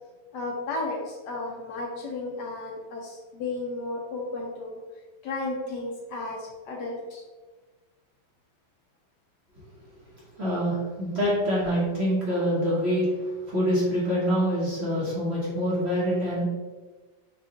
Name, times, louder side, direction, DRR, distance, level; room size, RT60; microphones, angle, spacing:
voice 1, 0.3-4.8 5.2-7.2, left 2 dB, 70° left, -1 dB, 1.2 m, -33 dB
voice 2, 10.4-13.2 13.5-16.4, equal, 40° right, -7 dB, 1.1 m, -25 dB
4.7 x 2.5 x 3.8 m, 1.3 s
omnidirectional pair, 2.1 m